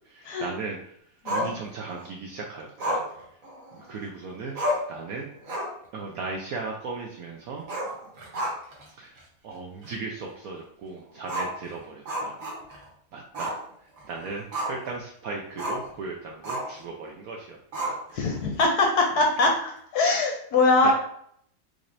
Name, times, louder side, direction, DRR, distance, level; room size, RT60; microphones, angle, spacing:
voice 1, 0.1-0.9 1.3-3.0 3.7-4.5 4.9-5.3 5.9-7.6 9.0-9.1 9.4-12.4 13.1-13.6 14.1-18.0 20.8-20.9, right 4 dB, 80° right, 0 dB, 0.8 m, -37 dB
voice 2, 1.2-1.6 18.1-20.9, left 3 dB, 70° left, 1 dB, 1.0 m, -22 dB
Growling, 1.3-2.1 2.8-4.0 4.3-4.4 4.6-5.0 5.4-5.9 6.2-6.3 7.6-8.8 9.2-9.3 9.8-9.9 11.2-12.9 13.3-13.6 14.0-14.9 15.6-15.9 16.4-16.8 17.7-18.3, equal, 50° right, 1.3 m, -31 dB
3.8 x 3.3 x 2.6 m, 0.65 s
omnidirectional pair, 2.1 m